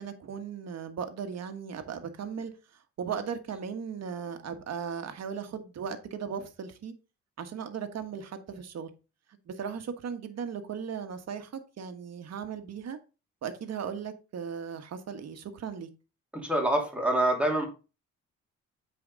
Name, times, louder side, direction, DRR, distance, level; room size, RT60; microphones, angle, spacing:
voice 1, 0.0-6.9 7.4-8.9 9.5-13.0 13.4-15.9, right 7 dB, 60° right, 1.6 m, -37 dB
voice 2, 16.3-17.7, right 1 dB, 5° right, 2.8 m, -26 dB
8.7 x 5.0 x 4.0 m
cardioid pair, 90°, 30 cm